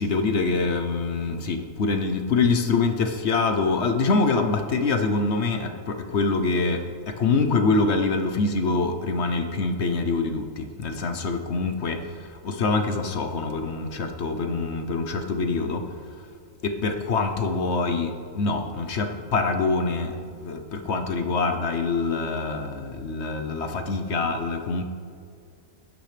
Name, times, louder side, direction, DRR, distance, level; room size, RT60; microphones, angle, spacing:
voice 1, 0.0-6.8 7.2-12.0 12.4-15.8 16.6-20.1 20.4-24.8, left 3 dB, 55° left, 6 dB, 1.0 m, -25 dB
16.5 x 12.0 x 3.3 m, 2.3 s
omnidirectional pair, 1.5 m